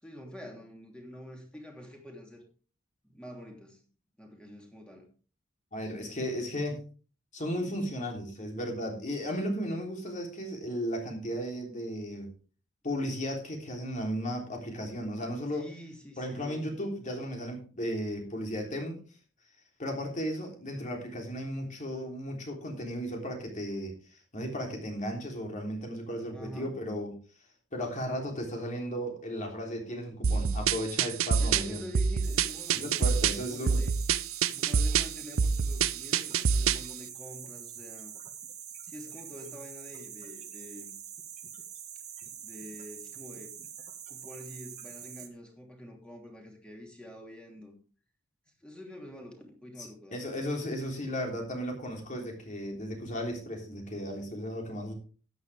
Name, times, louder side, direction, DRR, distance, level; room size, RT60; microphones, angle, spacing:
voice 1, 0.0-2.4 3.0-3.8 4.2-5.1 15.5-16.6 26.3-26.8 31.4-33.2 33.5-34.0 34.4-38.1 38.9-40.9 42.4-43.6 44.1-47.7 48.6-50.3, left 1 dB, 5° left, 1 dB, 3.0 m, -46 dB
voice 2, 5.7-6.8 7.3-12.3 12.8-15.6 16.2-19.0 19.8-27.1 27.7-31.8 32.7-33.8 49.8-54.9, equal, 40° left, 1 dB, 3.4 m, -35 dB
sound 1, 30.2-36.9, right 6 dB, 85° right, 0.6 m, -27 dB
sound 2, 32.2-45.3, right 8 dB, 35° right, 1.6 m, -45 dB
13.0 x 9.6 x 3.5 m, 0.38 s
head